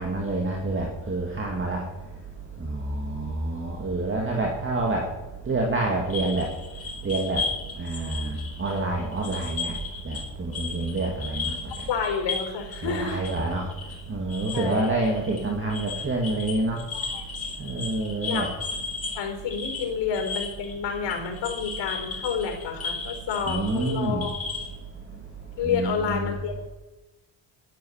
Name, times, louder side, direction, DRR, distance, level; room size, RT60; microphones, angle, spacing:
voice 1, 0.0-1.8 2.6-5.1 5.5-6.5 7.0-7.4 7.8-9.7 10.0-11.5 12.8-13.7 14.1-16.8 17.6-18.5 23.5-24.3 25.6-26.3, right 2 dB, 25° right, 1 dB, 2.5 m, -27 dB
sound 1, 6.1-10.3 10.5-24.7, left 4 dB, 30° left, 5.2 m, -35 dB
voice 2, 11.9-13.2 14.5-14.9 16.9-17.2 18.3-18.4 19.1-24.4 25.6-26.7, left 6 dB, 70° left, 3 dB, 4.6 m, -29 dB
12.0 x 11.0 x 7.5 m, 1.0 s
cardioid pair, 110°, 45 cm